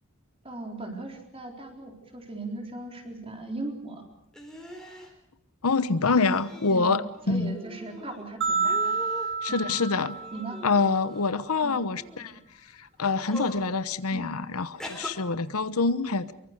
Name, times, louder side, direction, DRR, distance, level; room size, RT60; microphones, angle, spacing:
voice 1, 0.4-4.0 6.7-6.9 7.3-9.0 9.5-9.7 10.3-10.6 11.6-11.8 14.1-14.3, right 2 dB, 25° right, 3 dB, 4.0 m, -38 dB
sound 1, 4.3-5.1 6.0-6.8 7.1-8.2 8.6-9.4 10.1-11.2 11.9-12.3 13.0-13.7 14.8-15.1, equal, 5° left, 3.8 m, -42 dB
voice 2, 5.6-7.6 9.4-10.2 10.6-12.3 12.8-16.3, left 4 dB, 85° left, 14 dB, 1.0 m, -26 dB
sound 2, 8.4-10.8, right 4 dB, 55° right, 4.5 m, -29 dB
24.5 x 23.5 x 6.6 m, 0.74 s
head